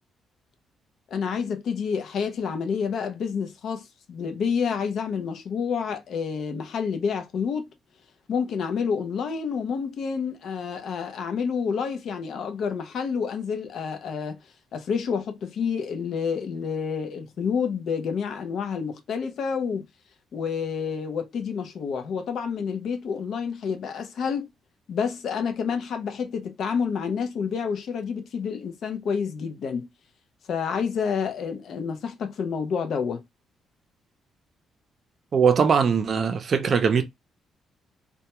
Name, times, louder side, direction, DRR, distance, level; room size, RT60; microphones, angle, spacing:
voice 1, 1.1-7.7 8.3-14.4 14.7-19.9 20.3-24.5 24.9-29.9 30.5-33.2, left 6 dB, 65° left, 0.5 m, -29 dB
voice 2, 35.3-37.0, right 6 dB, 50° right, 0.5 m, -21 dB
2.2 x 2.1 x 2.9 m
cardioid pair, 90°, 0 cm